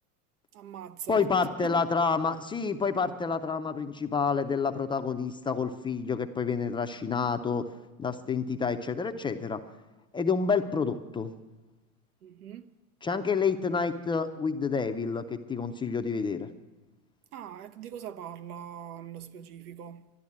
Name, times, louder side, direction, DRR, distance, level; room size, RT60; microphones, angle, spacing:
voice 1, 0.5-1.3 1.6-1.8 12.2-12.7 17.3-20.1, right 9 dB, 85° right, 1.0 m, -42 dB
voice 2, 1.1-7.6 8.0-9.6 10.1-11.3 13.0-16.5, left 5 dB, 10° left, 0.4 m, -28 dB
12.5 x 11.5 x 8.5 m
supercardioid pair, 120°, 43 cm